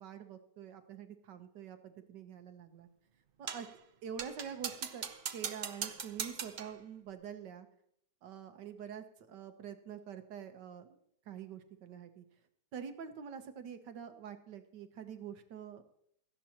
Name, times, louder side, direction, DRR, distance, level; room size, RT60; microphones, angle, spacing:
voice 1, 0.0-2.9 3.4-3.7 4.0-7.7 8.2-11.0 11.3-12.2 12.7-16.0, right 8 dB, 85° right, 8 dB, 1.6 m, -46 dB
sound 1, 3.5-3.7 4.2-6.8, right 7 dB, 60° right, 0.5 m, -40 dB
16.5 x 13.0 x 2.9 m, 0.72 s
omnidirectional pair, 1.8 m